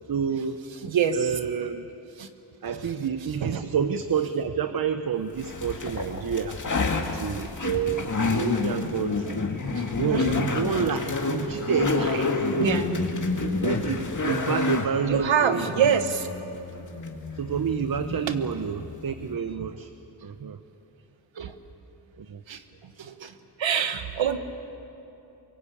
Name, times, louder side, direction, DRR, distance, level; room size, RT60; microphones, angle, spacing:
voice 1, 0.1-0.6 1.1-1.9 2.6-6.6 7.1-9.4 9.7-12.5 13.4-15.7 17.3-19.9 20.2-20.6 22.2-22.4, right 7 dB, 50° right, 9 dB, 0.9 m, -29 dB
voice 2, 0.8-1.2 2.2-2.3 3.4-3.6 9.8-10.4 12.6-12.9 14.3-14.4 15.1-16.3 21.4-21.5 22.5-22.6 23.0-23.3 23.6-24.4, right 8 dB, 85° right, 9 dB, 1.5 m, -25 dB
sound 1, 5.4-19.3, left 3 dB, 40° left, 2.3 m, -29 dB
24.0 x 23.0 x 8.5 m, 3.0 s
wide cardioid pair, 90°, 44 cm